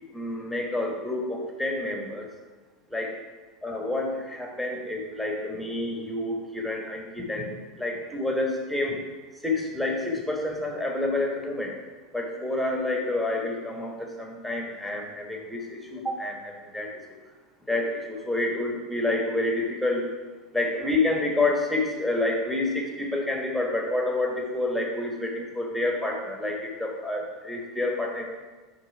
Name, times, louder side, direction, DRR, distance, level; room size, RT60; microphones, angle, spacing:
voice 1, 0.1-2.3 2.9-3.2 3.6-9.0 9.4-11.8 12.1-17.0 17.7-20.1 20.5-28.2, left 2 dB, ahead, 0 dB, 1.2 m, -28 dB
9.2 x 3.2 x 4.8 m, 1.3 s
figure-of-eight pair, 80°, 2 cm